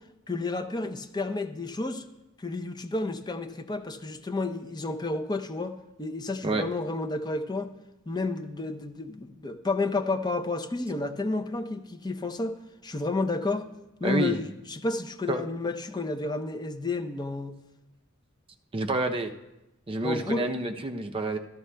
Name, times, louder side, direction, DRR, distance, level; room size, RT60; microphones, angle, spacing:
voice 1, 0.3-2.0 2.4-7.7 8.1-12.5 12.8-13.7 14.0-17.6 20.0-20.5, left 3 dB, 20° left, 6 dB, 0.5 m, -31 dB
voice 2, 14.0-14.4 15.3-15.4 18.7-19.3 19.9-21.4, right 2 dB, 25° right, 5 dB, 0.5 m, -28 dB
14.0 x 12.5 x 2.2 m, 0.95 s
head